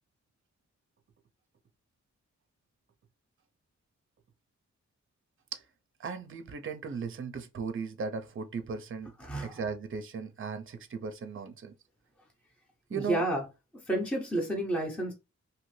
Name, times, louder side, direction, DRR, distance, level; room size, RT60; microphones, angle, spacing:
voice 1, 6.0-9.1 9.4-11.7 12.9-13.2, right 5 dB, 45° right, 0.5 m, -37 dB
voice 2, 9.2-9.6 12.9-13.4 13.9-15.1, right 1 dB, 5° left, 0.7 m, -30 dB
2.8 x 2.5 x 3.1 m
wide cardioid pair, 90°, 30 cm